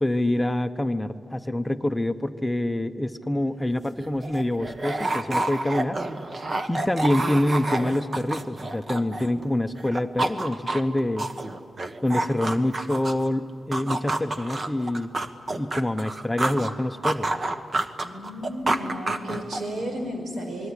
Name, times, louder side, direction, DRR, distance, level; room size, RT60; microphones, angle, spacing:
voice 1, 0.0-6.0 6.7-11.3 12.0-15.1 15.6-17.4, left 1 dB, 10° left, 8 dB, 0.8 m, -26 dB
sound 1, 3.6-3.7 4.0-9.5 9.8-13.3 13.7-16.7 17.0-19.8, right 2 dB, 40° right, 1.4 m, -29 dB
voice 2, 18.0-20.7, equal, 85° right, 4 dB, 5.3 m, -33 dB
28.0 x 21.0 x 9.9 m, 2.3 s
wide cardioid pair, 120°, 0 cm